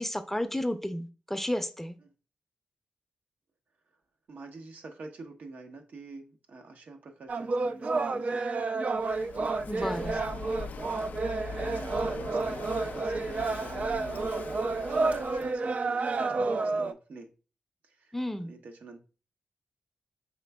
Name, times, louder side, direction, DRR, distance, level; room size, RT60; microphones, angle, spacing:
voice 1, 0.0-2.0 9.7-10.1 18.1-18.5, left 1 dB, 10° left, 9 dB, 0.5 m, -32 dB
voice 2, 4.3-8.7 9.8-10.4 10.9-11.2 11.5-17.3 17.8-19.0, right 3 dB, 70° right, 4 dB, 0.7 m, -47 dB
sound 1, 7.3-16.9, right 3 dB, 50° right, 0.4 m, -30 dB
Walk footsteps / Wind / Waves surf, 8.9-15.6, left 5 dB, 70° left, 0.3 m, -42 dB
5.1 x 3.3 x 2.2 m, 0.34 s
supercardioid pair, 45°, 3 cm